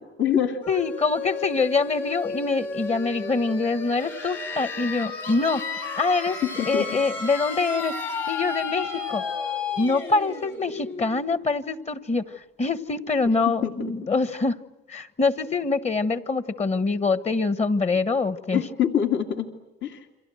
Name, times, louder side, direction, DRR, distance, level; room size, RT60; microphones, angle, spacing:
voice 1, 0.0-0.6 6.3-7.0 13.6-13.9 18.5-19.5 19.8-20.1, left 9 dB, 70° left, 4 dB, 2.4 m, -25 dB
sound 1, 0.6-12.2, left 4 dB, 90° left, 6.7 m, -33 dB
voice 2, 0.7-5.6 6.0-6.4 6.7-7.9 8.3-9.2 9.8-12.3 12.6-14.6 14.9-18.6, left 4 dB, 35° left, 14 dB, 1.3 m, -24 dB
29.5 x 24.0 x 7.8 m, 0.97 s
cardioid pair, 90°, 20 cm